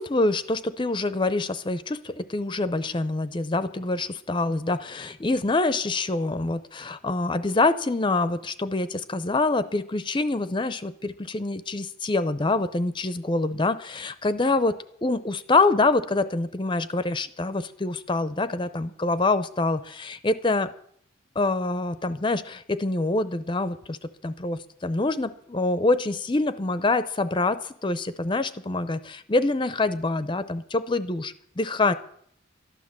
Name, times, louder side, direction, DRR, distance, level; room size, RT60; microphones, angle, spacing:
voice 1, 0.0-14.8 15.0-20.7 21.4-31.9, left 2 dB, 25° left, 13 dB, 0.6 m, -25 dB
13.0 x 12.0 x 7.4 m, 0.66 s
head